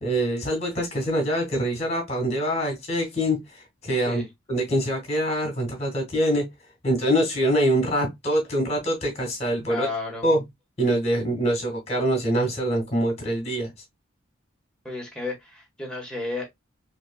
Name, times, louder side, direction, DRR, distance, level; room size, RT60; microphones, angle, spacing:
voice 1, 0.0-3.4 3.8-4.2 4.5-6.5 6.8-9.9 10.2-10.4 10.8-13.7, equal, 30° left, 1.8 m, -24 dB
voice 2, 9.7-10.3 14.8-16.4, left 3 dB, 5° left, 1.3 m, -32 dB
4.2 x 2.9 x 2.3 m
head